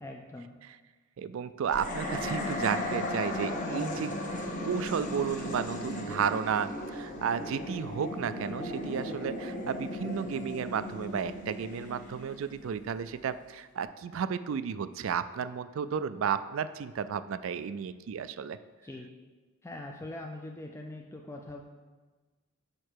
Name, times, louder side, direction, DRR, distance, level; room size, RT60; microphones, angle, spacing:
voice 1, 0.0-0.6 18.8-19.1 19.6-21.6, left 2 dB, 10° left, 1 dB, 0.4 m, -42 dB
voice 2, 1.2-4.1 4.6-18.6, right 7 dB, 65° right, 14 dB, 0.3 m, -33 dB
sound 1, 1.7-13.1, left 1 dB, 35° left, 0.9 m, -36 dB
6.5 x 5.6 x 4.5 m, 1.3 s
head